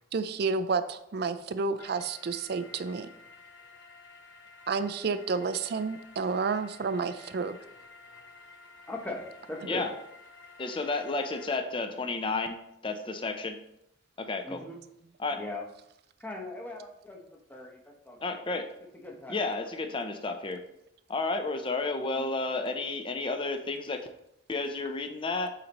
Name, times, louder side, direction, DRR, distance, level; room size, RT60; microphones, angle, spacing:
voice 1, 0.1-3.1 4.7-7.6, right 4 dB, 55° right, 11 dB, 0.4 m, -30 dB
sound 1, 1.8-11.5, left 4 dB, 65° left, 0.9 m, -52 dB
voice 2, 8.9-9.9 14.4-14.8 15.3-15.6 16.2-18.4 19.0-19.5 22.0-22.3, left 2 dB, 10° left, 0 dB, 0.8 m, -40 dB
voice 3, 10.6-13.6 14.2-14.6 15.2-15.4 18.2-18.7 19.3-20.6 21.1-24.1 24.5-25.5, left 3 dB, 25° left, 6 dB, 0.5 m, -32 dB
8.5 x 4.1 x 2.9 m, 0.81 s
head